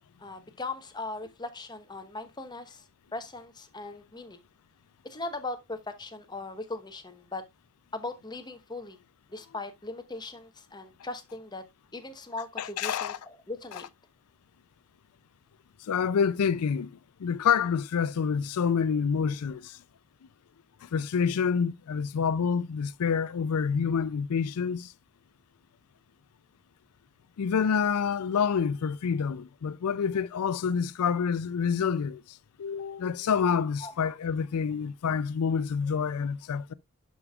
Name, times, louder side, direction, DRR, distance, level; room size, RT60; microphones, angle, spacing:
voice 1, 0.2-2.8 3.1-4.4 5.0-7.4 7.9-9.0 9.3-11.6 11.9-13.9 33.8-33.9, left 2 dB, 20° left, 1.0 m, -39 dB
voice 2, 12.6-13.2 13.7-13.8 15.8-19.8 20.8-24.9 27.4-36.7, left 6 dB, 80° left, 0.4 m, -28 dB
11.0 x 5.2 x 2.3 m
head